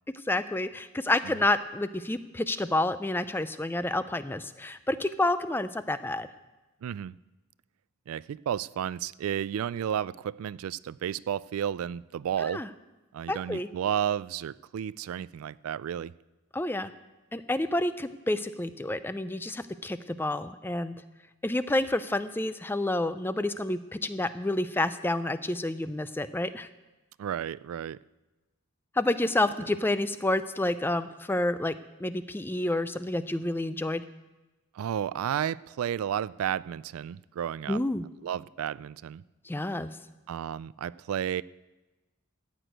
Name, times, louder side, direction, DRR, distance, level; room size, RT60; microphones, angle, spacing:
voice 1, 0.3-6.3 12.5-12.7 13.3-13.7 16.5-16.9 17.3-20.9 21.4-26.7 29.0-31.7 32.0-34.0 37.7-38.1 39.5-39.9, left 2 dB, 10° left, 12 dB, 0.4 m, -29 dB
voice 2, 6.8-7.2 8.1-12.6 13.1-16.1 27.2-28.0 34.7-37.8 38.2-39.2 40.3-41.4, right 9 dB, 85° right, 21 dB, 0.3 m, -32 dB
14.0 x 6.2 x 9.1 m, 1.1 s
head